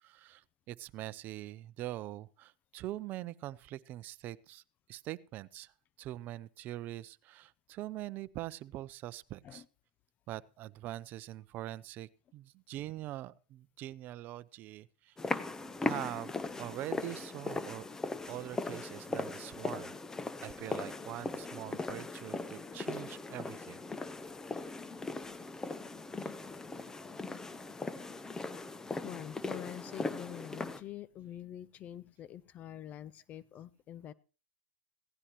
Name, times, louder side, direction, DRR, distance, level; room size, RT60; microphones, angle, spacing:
voice 1, 0.0-4.6 4.9-5.7 6.0-9.6 10.3-15.2 15.9-17.9 18.3-19.9 20.4-23.8, right 15 dB, 45° right, 0.7 m, -43 dB
sound 1, 15.2-30.8, left 3 dB, 15° left, 0.9 m, -39 dB
voice 2, 29.0-34.1, left 11 dB, 35° left, 0.6 m, -46 dB
17.0 x 15.5 x 3.1 m
hypercardioid pair, 110°, 4 cm